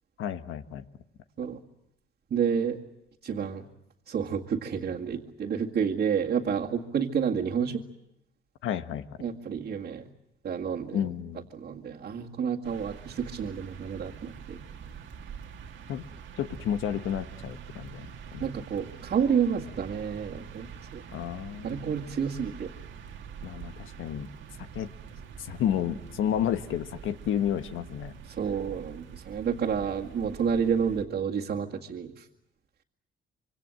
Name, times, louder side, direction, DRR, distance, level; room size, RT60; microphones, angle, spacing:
voice 1, 0.2-0.8 8.6-9.2 10.9-11.5 15.9-16.0 16.4-18.1 18.3-18.5 21.1-21.9 23.4-24.3 24.7-24.9 25.4-28.1, left 9 dB, 85° left, 9 dB, 1.4 m, -31 dB
voice 2, 2.3-2.8 3.2-3.7 4.1-7.8 9.2-10.1 10.4-11.0 11.5-14.6 18.4-21.0 21.6-22.7 28.4-32.2, right 7 dB, 55° right, -3 dB, 2.1 m, -30 dB
sound 1, 12.6-31.1, right 7 dB, 75° right, 1.9 m, -45 dB
26.5 x 24.5 x 7.8 m, 0.85 s
cardioid pair, 90°, 20 cm